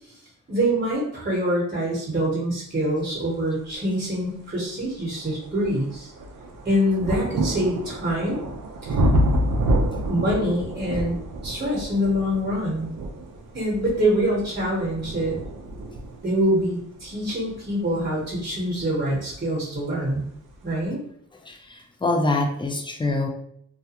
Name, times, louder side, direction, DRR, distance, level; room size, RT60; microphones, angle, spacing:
voice 1, 0.5-6.1 6.6-8.4 8.8-9.0 10.1-11.2 11.4-12.9 13.5-15.4 16.2-20.2 20.6-21.0, equal, 35° right, -4 dB, 0.9 m, -25 dB
sound 1, 4.1-4.2 4.8-19.5 20.4-20.5, right 1 dB, 80° right, 0.5 m, -28 dB
voice 2, 21.4-23.3, left 2 dB, 15° left, 2 dB, 0.4 m, -25 dB
2.3 x 2.1 x 2.8 m, 0.67 s
cardioid pair, 70°, 31 cm